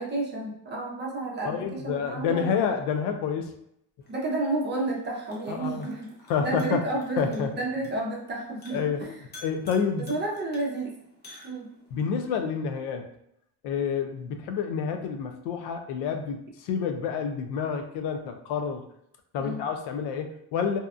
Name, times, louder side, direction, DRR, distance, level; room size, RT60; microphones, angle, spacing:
voice 1, 0.0-2.7 4.1-6.1 6.4-9.2 10.0-11.0 11.4-11.7 19.4-19.6, right 2 dB, 25° right, -2 dB, 0.5 m, -31 dB
voice 2, 1.5-3.5 5.5-5.9 6.3-6.8 7.2-7.5 8.7-9.0 9.4-10.1 11.9-13.1 13.6-18.8 19.3-20.8, left 6 dB, 85° left, 6 dB, 0.5 m, -28 dB
sound 1, 4.0-12.0, left 1 dB, 25° left, 0.6 m, -50 dB
2.7 x 2.2 x 2.4 m, 0.74 s
cardioid pair, 150°, 40 cm